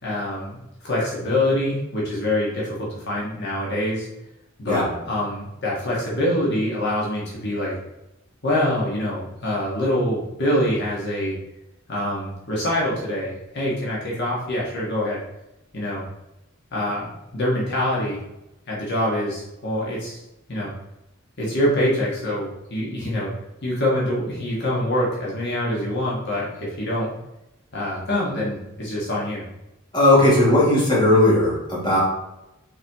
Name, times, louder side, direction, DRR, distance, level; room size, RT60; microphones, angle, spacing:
voice 1, 0.0-4.1 4.6-7.7 8.4-11.4 11.9-15.2 15.7-16.0 16.7-18.2 18.7-20.2 20.5-20.7 21.4-23.3 23.6-27.1 27.7-29.4, left 1 dB, 55° left, -5 dB, 1.6 m, -25 dB
voice 2, 29.9-32.0, left 1 dB, 25° left, -6 dB, 2.2 m, -17 dB
6.0 x 4.8 x 3.6 m, 0.92 s
head